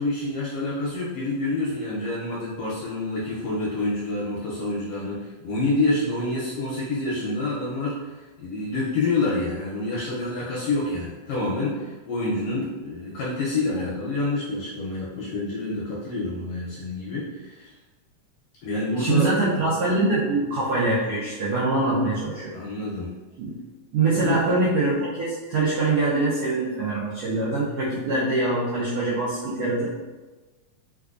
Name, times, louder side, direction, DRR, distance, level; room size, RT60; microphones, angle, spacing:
voice 1, 0.0-8.0 8.4-17.7 18.6-19.3 22.5-23.1 24.1-24.4, left 2 dB, 80° left, -5 dB, 1.5 m, -27 dB
voice 2, 19.0-22.5 23.4-23.5 23.9-29.9, right 2 dB, 85° right, -8 dB, 1.3 m, -24 dB
4.6 x 2.3 x 2.4 m, 1.2 s
omnidirectional pair, 3.3 m